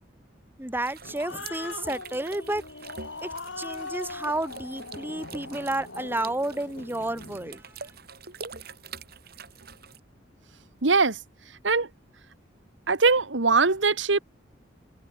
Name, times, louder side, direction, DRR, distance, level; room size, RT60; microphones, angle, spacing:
voice 1, 0.6-2.6 3.2-3.3 3.6-7.6, right 1 dB, 10° right, 1.8 m, -31 dB
sound 1, 0.7-10.0, right 5 dB, 55° right, 5.2 m, -46 dB
Growling, 0.8-7.6, left 3 dB, 90° left, 3.9 m, -40 dB
voice 2, 10.8-11.2 11.6-11.9 12.9-14.2, right 4 dB, 80° right, 1.6 m, -21 dB
head